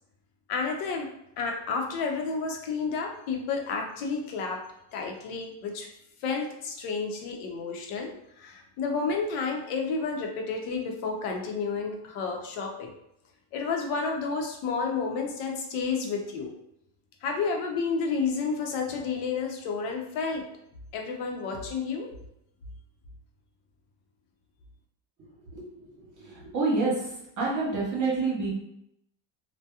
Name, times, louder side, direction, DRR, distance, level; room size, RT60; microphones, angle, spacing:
voice 1, 0.5-1.1 1.4-4.6 4.9-5.9 6.2-8.1 8.4-12.9 13.5-16.5 17.2-20.4 20.9-22.1, left 4 dB, 85° left, 2 dB, 0.8 m, -31 dB
voice 2, 26.2-26.9 27.4-28.5, right 3 dB, 35° right, -4 dB, 1.1 m, -27 dB
2.7 x 2.2 x 2.3 m, 0.78 s
cardioid pair, 120°, 49 cm